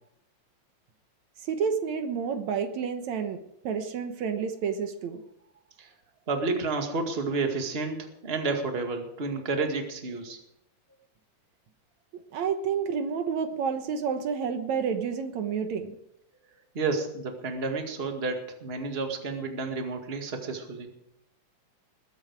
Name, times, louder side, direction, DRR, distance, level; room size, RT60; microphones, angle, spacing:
voice 1, 1.5-3.4 3.6-5.2 12.3-16.0, right 6 dB, 75° right, 8 dB, 2.5 m, -29 dB
voice 2, 6.3-10.4 16.7-20.9, right 3 dB, 25° right, 4 dB, 1.9 m, -30 dB
20.5 x 9.7 x 4.7 m, 0.79 s
omnidirectional pair, 3.3 m